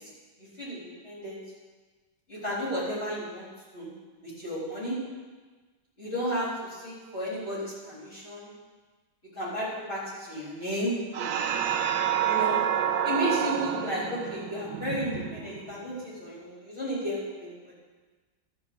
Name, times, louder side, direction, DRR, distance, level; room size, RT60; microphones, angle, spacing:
voice 1, 1.0-1.4 2.3-3.5 3.7-3.9 4.2-5.0 6.0-8.5 9.4-10.9 12.2-12.6 13.0-17.6, equal, 30° left, -7 dB, 4.0 m, -33 dB
sound 1, 11.1-15.9, right 9 dB, 75° right, 1.4 m, -28 dB
13.5 x 5.4 x 6.9 m, 1.4 s
omnidirectional pair, 2.2 m